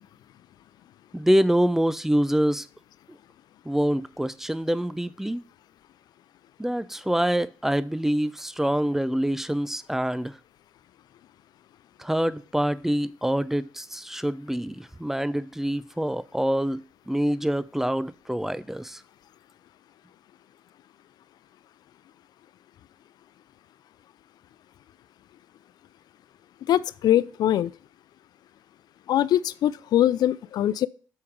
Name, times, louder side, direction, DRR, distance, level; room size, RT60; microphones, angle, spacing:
voice 1, 1.1-2.7 3.6-5.4 6.6-10.4 12.0-16.8 17.1-19.0, equal, 5° right, 0.6 m, -25 dB
voice 2, 26.7-27.7 29.1-30.9, left 12 dB, 70° left, 0.4 m, -22 dB
7.8 x 3.6 x 5.9 m
hypercardioid pair, 45°, 7 cm